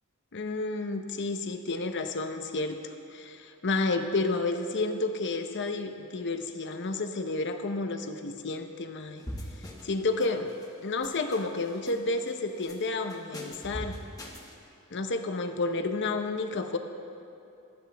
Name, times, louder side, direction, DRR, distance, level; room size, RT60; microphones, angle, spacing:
voice 1, 0.3-2.8 3.1-9.2 9.8-10.5 10.8-14.0 14.9-16.8, left 3 dB, 55° left, 6 dB, 0.9 m, -31 dB
sound 1, 9.2-9.9 10.2-10.7 11.0-12.0 12.3-12.8 13.1-14.5, equal, 15° left, 1.6 m, -41 dB
26.0 x 9.8 x 3.5 m, 2.7 s
head